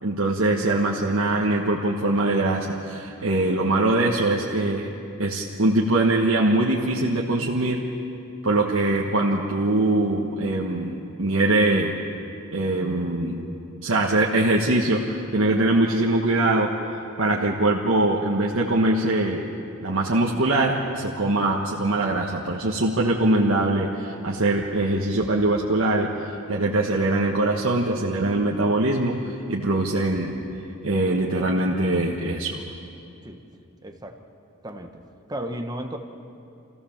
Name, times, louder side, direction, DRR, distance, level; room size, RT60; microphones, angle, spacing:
voice 1, 0.0-4.9 5.2-7.9 8.4-12.1 12.5-13.5 13.8-16.7 17.2-19.5 19.8-30.4 30.8-32.7, right 2 dB, 65° right, -2 dB, 1.4 m, -22 dB
voice 2, 33.8-34.2 34.6-35.0 35.3-36.0, right 1 dB, 20° right, 5 dB, 1.2 m, -33 dB
26.5 x 16.0 x 7.3 m, 2.7 s
head